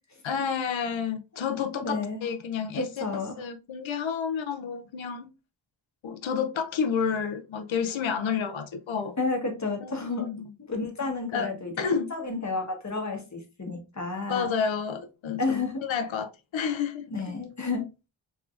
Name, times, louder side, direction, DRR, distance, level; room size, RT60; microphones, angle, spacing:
voice 1, 0.2-3.1 3.4-5.3 6.0-9.2 9.8-10.5 11.3-11.5 11.8-12.1 14.3-17.1, left 6 dB, 75° left, 0.6 m, -30 dB
voice 2, 1.8-2.2 2.8-3.4 9.2-10.3 10.6-11.7 12.1-14.5 15.4-15.8 17.1-17.9, left 3 dB, 35° left, 1.2 m, -31 dB
3.6 x 3.4 x 2.4 m
wide cardioid pair, 80°, 47 cm